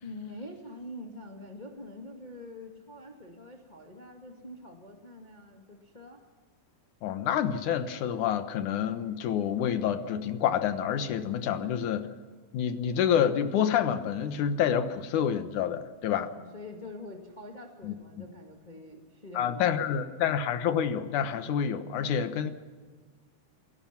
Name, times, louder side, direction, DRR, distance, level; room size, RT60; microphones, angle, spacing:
voice 1, 0.0-6.2 16.3-20.5, left 1 dB, 15° left, 1 dB, 1.7 m, -45 dB
voice 2, 7.0-12.1 12.5-16.3 17.8-17.9 19.4-22.5, left 8 dB, 80° left, 9 dB, 2.7 m, -28 dB
29.0 x 17.0 x 5.9 m, 1.5 s
omnidirectional pair, 3.5 m